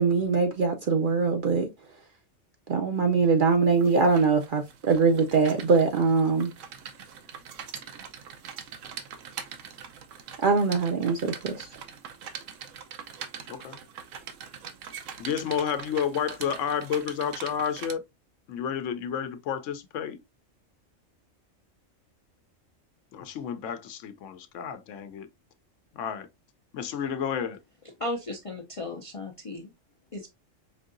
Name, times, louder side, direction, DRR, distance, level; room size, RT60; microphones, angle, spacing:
voice 1, 0.0-1.7 2.7-6.5 10.4-11.7, right 4 dB, 55° right, 0.6 m, -23 dB
sound 1, 3.2-17.9, right 7 dB, 80° right, 1.0 m, -43 dB
voice 2, 15.2-18.0 18.5-20.2 23.1-25.3 26.0-26.3 26.7-27.6, left 8 dB, 75° left, 0.9 m, -31 dB
voice 3, 28.0-29.7 30.1-30.3, left 1 dB, 45° left, 0.4 m, -35 dB
5.2 x 2.7 x 2.4 m
omnidirectional pair, 1.3 m